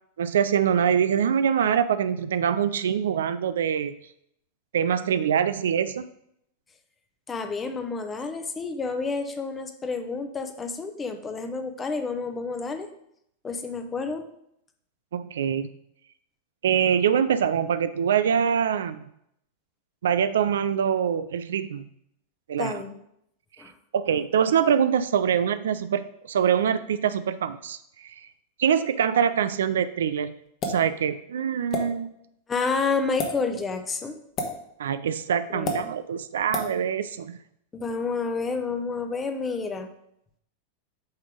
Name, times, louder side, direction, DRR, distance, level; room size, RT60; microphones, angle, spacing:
voice 1, 0.2-3.9 4.7-6.0 15.1-15.7 16.6-19.0 20.0-21.9 22.5-22.8 23.9-27.8 28.0-28.1 28.6-30.3 30.6-32.1 34.8-37.4, right 8 dB, 65° right, 13 dB, 0.3 m, -24 dB
voice 2, 7.3-12.9 13.4-14.2 22.6-22.9 23.6-23.7 32.5-34.2 35.5-35.9 37.7-39.9, left 4 dB, 20° left, 7 dB, 0.8 m, -29 dB
sound 1, 30.6-30.8 31.7-31.8 33.1-33.3 34.4-34.5 35.6-35.8 36.5-36.7, left 3 dB, 35° left, 1.2 m, -28 dB
8.0 x 3.4 x 5.1 m, 0.74 s
figure-of-eight pair, 90°, 0 cm